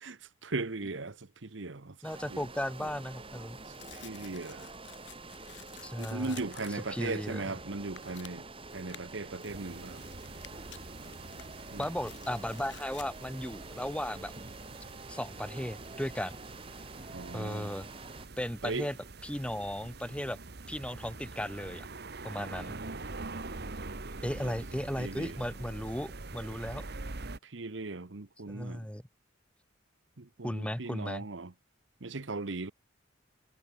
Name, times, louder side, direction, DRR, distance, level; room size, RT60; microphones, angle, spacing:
voice 1, 0.0-2.0 2.3-2.5 2.8-2.9 3.9-4.7 6.0-8.4 8.7-10.0 11.7-11.9 17.1-17.7 18.6-18.9 24.2-24.5 25.0-25.4 27.4-28.8 30.2-31.5 32.0-32.7, right 3 dB, 75° right, 1.1 m, -38 dB
voice 2, 2.0-3.6 5.8-6.4 6.7-7.5 11.8-14.3 15.1-16.4 17.3-17.9 18.4-19.0 19.2-20.4 20.7-21.9 22.2-22.8 24.2-26.8 28.5-29.0 30.4-31.3, equal, 5° left, 1.8 m, -36 dB
sound 1, 2.0-18.3, right 3 dB, 30° right, 6.5 m, -47 dB
Tearing, 2.1-14.5, left 6 dB, 65° left, 6.5 m, -54 dB
sound 2, 9.5-27.4, right 3 dB, 55° right, 1.4 m, -45 dB
head